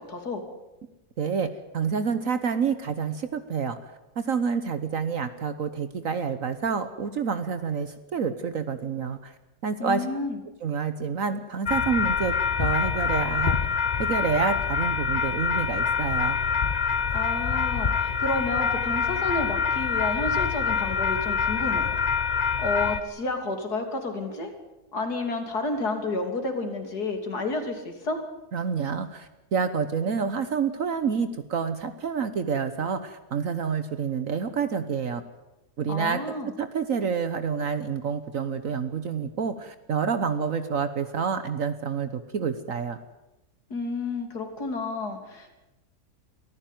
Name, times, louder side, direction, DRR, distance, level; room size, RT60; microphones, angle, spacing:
voice 1, 0.1-0.4 9.8-10.4 17.1-21.9 22.6-24.5 24.9-28.2 35.9-36.5 43.7-45.5, left 2 dB, 80° left, 5 dB, 3.6 m, -30 dB
voice 2, 1.2-3.8 4.2-9.3 9.6-10.1 10.6-13.6 14.0-16.4 28.5-35.2 35.8-43.0, right 6 dB, 60° right, 11 dB, 1.4 m, -28 dB
sound 1, 11.7-23.0, left 6 dB, 35° left, 0.8 m, -25 dB
24.0 x 15.0 x 9.2 m, 0.99 s
omnidirectional pair, 1.7 m